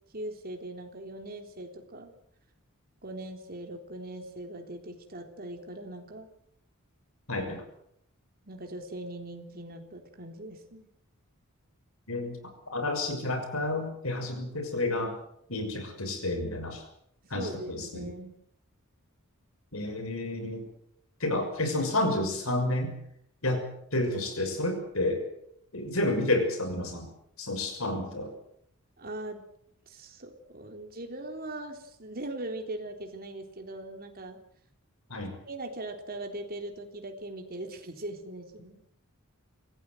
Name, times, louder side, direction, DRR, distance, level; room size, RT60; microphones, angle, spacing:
voice 1, 0.1-2.1 3.0-6.3 8.4-10.9 17.2-18.3 29.0-29.5 29.9-34.4 35.5-38.8, right 1 dB, 45° right, 4 dB, 3.7 m, -40 dB
voice 2, 7.3-7.6 12.1-12.4 12.7-15.2 15.5-16.8 17.3-18.1 19.7-20.7 21.2-22.9 23.4-23.6 23.9-25.2 25.7-27.1 27.4-28.3 35.1-35.4, left 2 dB, 70° left, 6 dB, 6.4 m, -30 dB
26.0 x 17.0 x 7.9 m, 0.71 s
head